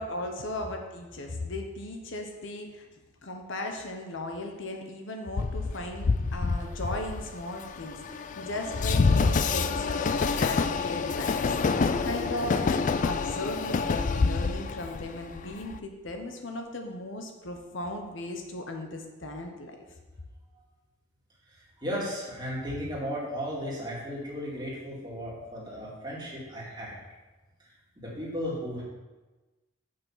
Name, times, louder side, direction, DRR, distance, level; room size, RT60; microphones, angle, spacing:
voice 1, 0.0-2.9 3.2-12.7 13.0-19.8, left 1 dB, 60° left, 3 dB, 0.9 m, -37 dB
Train, 5.4-15.8, left 4 dB, 40° left, 0.3 m, -27 dB
voice 2, 21.5-27.0 27.6-28.8, equal, 20° right, -5 dB, 2.2 m, -35 dB
6.8 x 5.7 x 5.6 m, 1.2 s
head